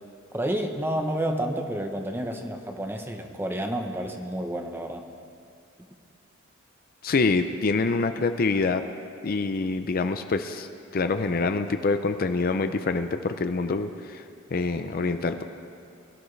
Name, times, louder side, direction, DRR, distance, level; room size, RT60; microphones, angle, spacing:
voice 1, 0.3-5.0, right 1 dB, 10° right, 4 dB, 0.9 m, -30 dB
voice 2, 7.0-8.9 9.2-14.2 14.5-15.4, left 3 dB, 45° left, 8 dB, 0.5 m, -26 dB
22.0 x 13.0 x 3.3 m, 2.4 s
head